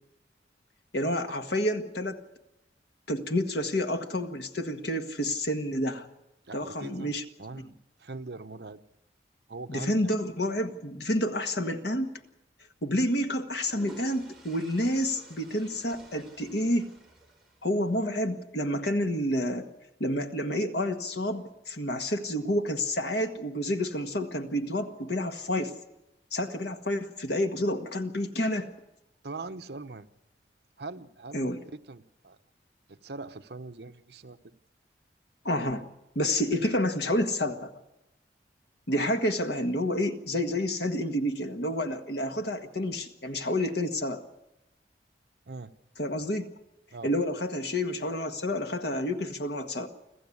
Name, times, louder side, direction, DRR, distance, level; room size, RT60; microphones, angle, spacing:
voice 1, 0.9-2.2 3.1-6.1 6.5-7.2 9.7-12.1 12.8-16.9 17.6-19.7 20.0-25.7 26.3-28.7 31.3-31.6 35.4-35.8 36.1-37.7 38.9-44.2 46.0-46.5 47.0-49.9, left 1 dB, 65° left, 6 dB, 1.7 m, -29 dB
voice 2, 6.5-8.8 9.5-10.1 29.2-30.1 30.8-32.4 32.9-34.5 45.5-45.7 46.9-47.1, right 3 dB, 65° right, 10 dB, 0.9 m, -42 dB
sound 1, 12.0-12.2 13.3-17.9, right 1 dB, ahead, 4.9 m, -51 dB
26.0 x 14.5 x 8.6 m, 0.94 s
head